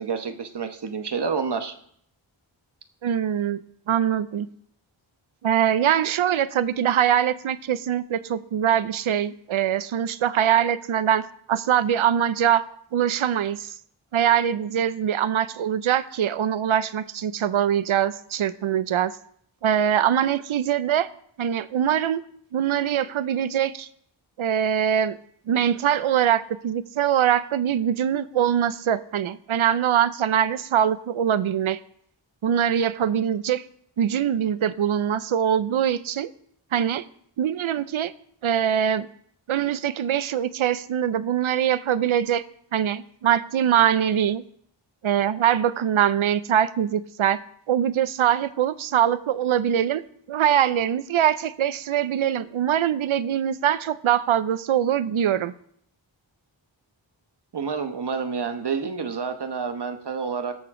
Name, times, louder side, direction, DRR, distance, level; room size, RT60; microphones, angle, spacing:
voice 1, 0.0-1.7 57.5-60.6, right 5 dB, 55° right, 7 dB, 1.1 m, -29 dB
voice 2, 3.0-3.6 3.9-4.5 5.4-12.6 12.9-13.7 14.1-19.2 19.6-21.1 21.4-22.2 22.5-23.9 24.4-25.2 25.5-31.8 32.4-33.6 34.0-36.3 36.7-37.0 37.4-38.1 38.4-39.1 39.5-42.4 42.7-44.4 45.0-47.4 47.7-50.0 50.3-55.5, right 9 dB, 90° right, 15 dB, 0.6 m, -23 dB
17.5 x 6.9 x 3.7 m, 0.66 s
wide cardioid pair, 85°, 47 cm